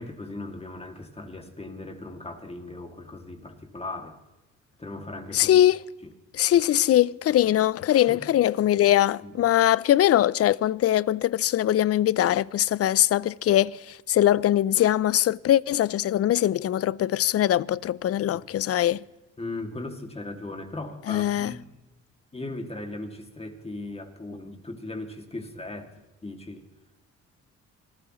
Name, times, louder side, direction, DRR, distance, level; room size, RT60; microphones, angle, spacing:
voice 1, 0.0-4.2 4.8-5.6 8.1-8.2 9.2-9.3 19.4-21.7 22.3-25.9 26.2-26.6, left 2 dB, 20° left, 2.3 m, -38 dB
voice 2, 5.3-5.8 6.3-19.0 21.1-21.5, left 12 dB, 50° left, 0.5 m, -22 dB
26.5 x 15.0 x 3.1 m
cardioid pair, 90°, 30 cm